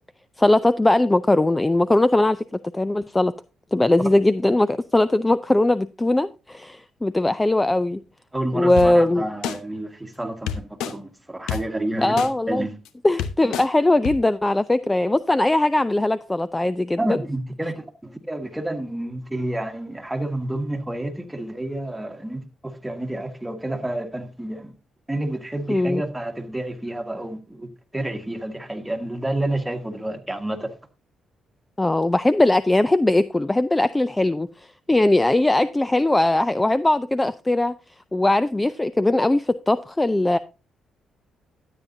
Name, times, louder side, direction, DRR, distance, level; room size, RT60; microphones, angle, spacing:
voice 1, 0.4-2.4 2.7-3.3 3.7-8.0 8.5-9.2 12.0-12.7 13.0-17.2 25.7-26.0 31.8-37.8 38.1-40.4, left 2 dB, 15° left, 0.4 m, -20 dB
voice 2, 8.3-12.7 17.0-24.7 25.1-30.7, right 1 dB, 10° right, 1.6 m, -29 dB
sound 1, 8.8-8.9 9.4-9.6 10.5-10.9 11.5-11.6 12.2-12.3 12.9-13.0 13.2-13.7 14.0-14.1, left 9 dB, 90° left, 0.9 m, -27 dB
12.5 x 8.9 x 2.7 m
cardioid pair, 90°, 0 cm